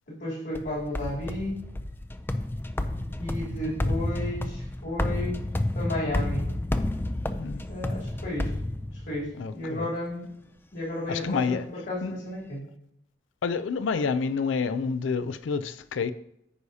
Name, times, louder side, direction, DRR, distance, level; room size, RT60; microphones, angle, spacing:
voice 1, 0.1-1.6 3.2-5.5 5.7-6.5 7.7-8.5 8.9-10.3 10.7-12.6, left 1 dB, 70° left, 3.2 m, -33 dB
sound 1, 0.5-9.3, left 1 dB, 10° left, 0.4 m, -30 dB
voice 2, 9.4-9.9 11.1-11.6 12.0-12.1 13.4-16.1, left 5 dB, 85° left, 0.4 m, -28 dB
14.5 x 4.8 x 2.7 m
head